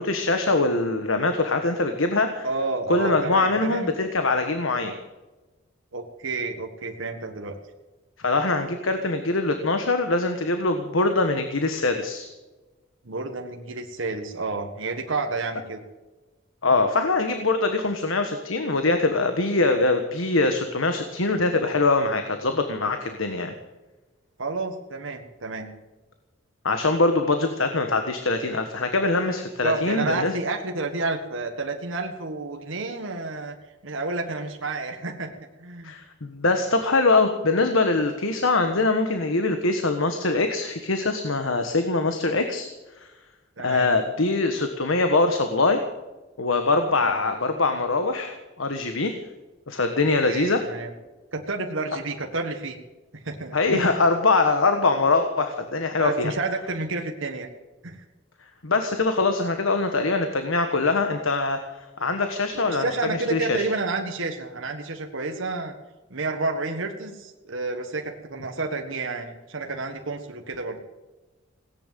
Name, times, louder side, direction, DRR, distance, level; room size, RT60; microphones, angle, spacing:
voice 1, 0.0-2.5 2.9-4.9 8.2-12.3 16.6-23.5 26.6-30.3 35.8-42.7 43.6-45.8 46.4-49.2 49.7-50.6 53.5-56.3 58.6-61.6 62.0-63.6, left 3 dB, 80° left, 6 dB, 1.4 m, -23 dB
voice 2, 2.4-3.9 5.9-7.6 13.0-15.8 24.4-25.7 29.6-33.6 33.8-35.3 35.6-35.9 43.6-43.9 46.9-47.1 50.3-50.9 51.3-52.8 53.1-54.0 55.9-57.5 57.8-58.0 62.6-65.7 66.1-70.8, right 3 dB, 75° right, 3 dB, 1.6 m, -30 dB
17.5 x 10.5 x 7.5 m, 1.2 s
head